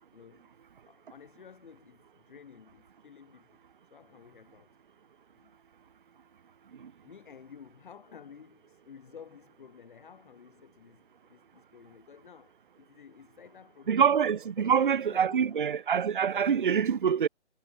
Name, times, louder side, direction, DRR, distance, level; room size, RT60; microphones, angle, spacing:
voice 1, 0.1-0.5 0.8-3.6 3.9-4.8 5.3-5.5 6.8-14.1 14.6-15.6, left 7 dB, 45° left, 5.4 m, -53 dB
voice 2, 13.9-17.3, right 7 dB, 45° right, 0.5 m, -25 dB
figure-of-eight pair, 145°, 35 cm